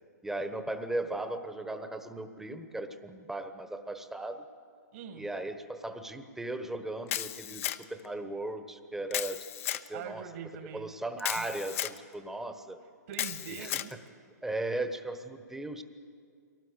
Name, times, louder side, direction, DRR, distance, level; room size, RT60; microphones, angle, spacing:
voice 1, 0.2-4.4 5.1-9.4 9.8-10.2 10.7-12.8 13.6-13.7 14.4-15.8, right 2 dB, 5° right, 8 dB, 1.2 m, -37 dB
voice 2, 4.9-5.3 9.9-10.9 11.3-11.5 13.1-13.9, right 8 dB, 55° right, 5 dB, 2.1 m, -43 dB
Camera, 7.1-8.1 9.1-9.9 11.2-12.0 13.1-13.9, left 13 dB, 50° left, 0.8 m, -34 dB
22.5 x 18.0 x 8.1 m, 2.2 s
hypercardioid pair, 135°, 9 cm